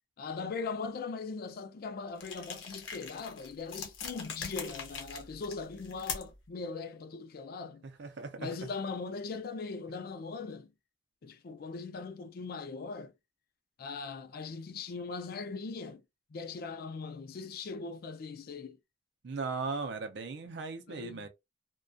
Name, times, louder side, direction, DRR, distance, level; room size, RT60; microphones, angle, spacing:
voice 1, 0.2-7.8 8.4-10.7 11.2-13.1 13.8-16.0 16.3-18.8 20.9-21.3, left 4 dB, 50° left, 0.4 m, -40 dB
sound 1, 2.2-6.5, left 6 dB, 90° left, 0.7 m, -42 dB
voice 2, 8.0-8.7 19.2-21.3, right 4 dB, 65° right, 0.5 m, -38 dB
2.3 x 2.2 x 2.5 m
head